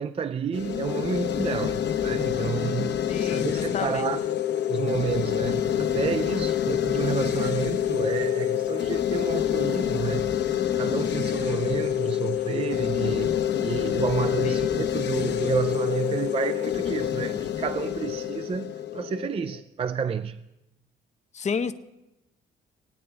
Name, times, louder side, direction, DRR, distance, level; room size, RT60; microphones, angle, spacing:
voice 1, 0.0-4.2 4.7-10.3 10.7-20.4, right 6 dB, 30° right, 0.4 m, -30 dB
sound 1, 0.5-19.6, left 10 dB, 60° left, 0.9 m, -27 dB
voice 2, 3.1-4.0 6.3-6.6 14.4-14.7 21.3-21.7, left 6 dB, 35° left, 0.6 m, -31 dB
19.0 x 9.3 x 3.4 m
cardioid pair, 90°, 20 cm